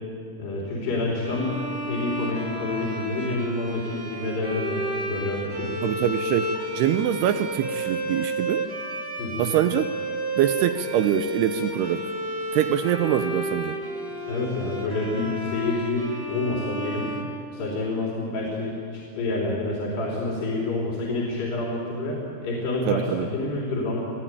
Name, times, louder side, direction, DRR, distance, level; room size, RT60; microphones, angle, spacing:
voice 1, 0.4-1.6 1.9-5.7 9.2-9.4 14.3-17.1 17.5-24.0, left 2 dB, 80° left, -4 dB, 5.6 m, -28 dB
sound 1, 1.2-18.1, right 1 dB, 10° right, 1.1 m, -32 dB
voice 2, 5.8-8.7 9.4-9.9 10.3-12.1 12.5-13.8 22.9-23.3, right 11 dB, 80° right, 9 dB, 2.7 m, -24 dB
29.0 x 17.0 x 9.1 m, 2.7 s
omnidirectional pair, 4.7 m